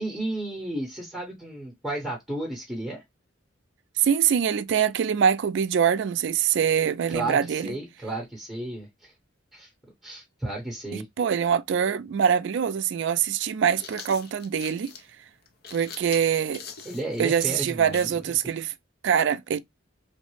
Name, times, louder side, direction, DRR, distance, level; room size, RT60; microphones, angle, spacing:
voice 1, 0.0-3.0 7.1-9.1 9.5-9.7 10.0-11.1 16.8-18.3, right 2 dB, 5° right, 0.8 m, -33 dB
voice 2, 4.0-7.7 10.9-14.9 15.7-16.6 17.2-18.7 19.0-19.6, right 8 dB, 60° right, 0.3 m, -24 dB
sound 1, 12.4-12.5 13.5-18.2, left 6 dB, 50° left, 0.5 m, -44 dB
3.1 x 2.0 x 3.0 m
head